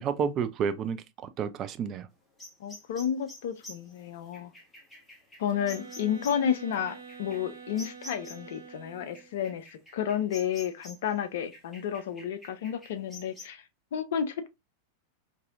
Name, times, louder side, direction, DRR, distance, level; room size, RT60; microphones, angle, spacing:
voice 1, 0.0-2.1, right 7 dB, 30° right, 0.3 m, -30 dB
sound 1, 2.4-8.6 9.1-11.1 11.5-13.5, left 1 dB, 5° left, 1.0 m, -48 dB
voice 2, 2.6-4.5 5.4-9.7 9.9-13.6 13.9-14.5, left 8 dB, 55° left, 0.5 m, -31 dB
sound 2, 5.5-9.4, right 5 dB, 65° right, 1.2 m, -47 dB
4.0 x 2.6 x 2.3 m
figure-of-eight pair, 90°, 0 cm